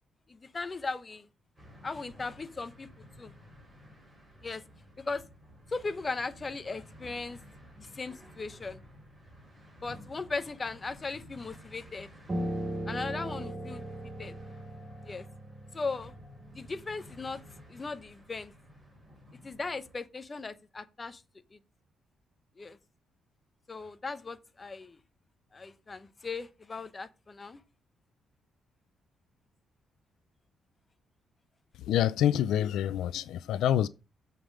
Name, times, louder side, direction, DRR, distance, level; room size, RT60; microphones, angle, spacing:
voice 1, 0.3-1.3 1.8-3.3 4.4-4.6 5.0-5.2 5.7-7.4 7.8-8.8 9.8-12.1 12.9-13.8 14.2-14.3 15.0-15.3 15.7-16.1 16.5-17.4 17.7-18.5 19.4-21.2 21.5-21.6 22.6-22.8 23.7-25.0 25.5-27.6, left 3 dB, 20° left, 0.8 m, -38 dB
sound 1, 1.5-20.0, equal, ahead, 3.7 m, -54 dB
Piano, 12.3-17.6, right 1 dB, 20° right, 2.2 m, -38 dB
voice 2, 31.8-33.9, left 11 dB, 90° left, 0.5 m, -27 dB
7.8 x 5.2 x 6.3 m
cardioid pair, 160°, 0 cm